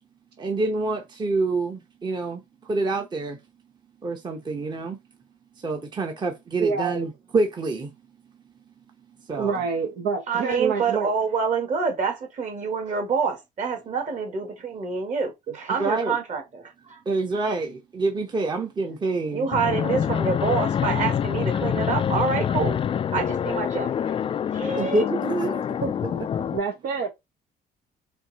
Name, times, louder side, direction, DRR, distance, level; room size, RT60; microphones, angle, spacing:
voice 1, 0.4-3.4 4.0-5.0 5.6-7.9 9.1-9.6 15.7-16.2 17.1-19.5 24.8-26.1, right 3 dB, 25° right, 0.9 m, -27 dB
voice 2, 6.6-7.0 9.4-11.1 25.8-26.2 26.5-27.1, right 5 dB, 70° right, 0.9 m, -27 dB
voice 3, 10.3-17.0 19.3-22.8 23.1-24.1 24.5-25.0, right 5 dB, 45° right, 1.8 m, -27 dB
Fixed-wing aircraft airplane, 19.5-26.6, left 8 dB, 35° left, 0.3 m, -26 dB
4.4 x 2.6 x 4.1 m
cardioid pair, 110°, 17 cm